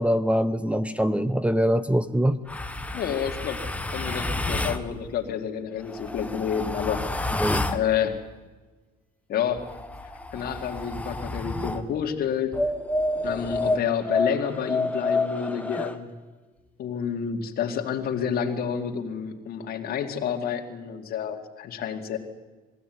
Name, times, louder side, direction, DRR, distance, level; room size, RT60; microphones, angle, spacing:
voice 1, 0.0-2.4 7.4-7.7, equal, 5° right, 14 dB, 0.7 m, -23 dB
sound 1, 2.5-4.8 5.8-7.9 9.5-11.9 12.5-16.0, left 2 dB, 10° left, 1.3 m, -29 dB
voice 2, 2.9-3.6 3.9-7.0 7.7-8.2 9.3-9.6 10.3-12.6 13.2-16.1 16.8-22.2, left 8 dB, 65° left, 4 dB, 2.3 m, -29 dB
22.0 x 15.5 x 9.5 m, 1.3 s
cardioid pair, 110°, 17 cm